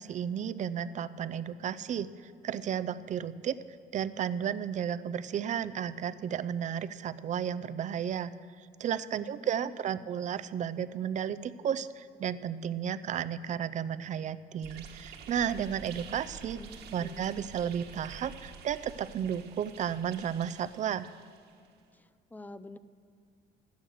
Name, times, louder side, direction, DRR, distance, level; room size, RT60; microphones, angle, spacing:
voice 1, 0.0-3.6 3.9-8.3 8.6-16.6 16.9-21.1, right 8 dB, 45° right, 14 dB, 0.5 m, -33 dB
voice 2, 9.2-10.1 16.5-17.3 21.9-22.8, left 2 dB, 10° left, 13 dB, 0.5 m, -48 dB
sound 1, 14.6-21.7, right 7 dB, 70° right, 1.4 m, -48 dB
13.0 x 9.4 x 6.4 m, 2.3 s
cardioid pair, 110°, 17 cm